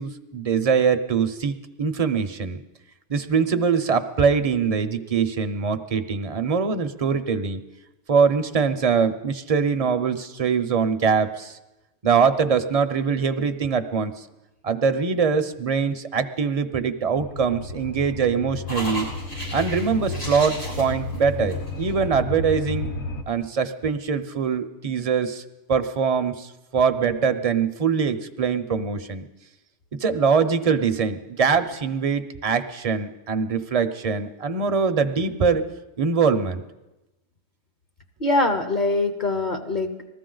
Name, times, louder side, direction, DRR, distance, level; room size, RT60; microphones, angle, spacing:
voice 1, 0.0-2.6 3.1-7.6 8.1-11.6 12.0-14.1 14.6-19.1 19.5-22.9 23.3-25.4 25.7-29.2 30.0-35.6 36.0-36.6, right 5 dB, 40° right, 9 dB, 0.5 m, -23 dB
sound 1, 17.1-23.2, left 2 dB, 65° left, 1.3 m, -33 dB
sound 2, 18.7-22.0, right 1 dB, 85° left, 6.5 m, -35 dB
voice 2, 38.2-40.0, left 2 dB, 45° left, 5 dB, 0.8 m, -23 dB
20.0 x 14.0 x 3.8 m, 1.0 s
omnidirectional pair, 1.3 m